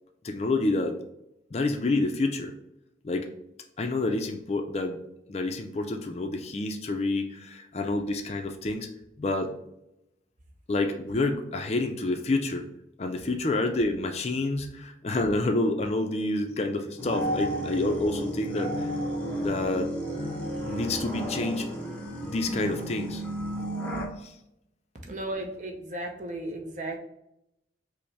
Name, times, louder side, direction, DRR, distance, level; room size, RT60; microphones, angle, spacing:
voice 1, 0.2-1.0 1.5-2.5 3.0-3.3 3.8-5.0 5.3-8.9 9.2-9.5 10.7-12.7 13.0-18.9 19.4-19.9 20.7-21.7 22.2-23.2 24.2-24.3, left 2 dB, 35° left, 5 dB, 0.4 m, -28 dB
sound 1, 17.0-24.1, right 1 dB, 10° left, 0.7 m, -32 dB
voice 2, 25.1-27.0, right 1 dB, 40° right, 3 dB, 0.6 m, -35 dB
5.1 x 2.1 x 3.3 m, 0.84 s
head